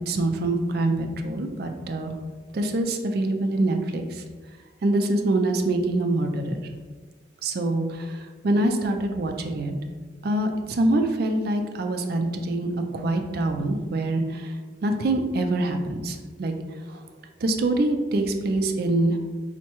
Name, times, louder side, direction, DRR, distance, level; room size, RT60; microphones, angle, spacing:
voice 1, 0.1-2.1 2.5-4.2 4.8-6.7 7.4-9.7 10.2-14.5 14.8-16.5 16.9-17.0 17.4-19.2, right 2 dB, 55° right, 5 dB, 0.4 m, -25 dB
4.4 x 2.1 x 2.9 m, 1.4 s
head